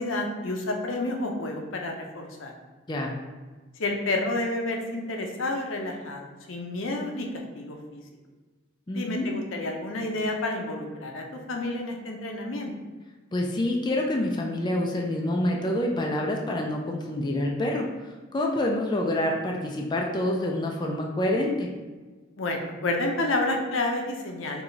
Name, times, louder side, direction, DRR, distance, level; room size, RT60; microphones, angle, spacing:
voice 1, 0.0-2.5 3.8-8.0 8.9-12.7 22.4-24.6, left 2 dB, 75° left, 2 dB, 0.6 m, -30 dB
voice 2, 8.9-9.3 13.3-21.7, left 1 dB, 20° left, 0 dB, 0.4 m, -27 dB
4.8 x 2.4 x 3.8 m, 1.3 s
head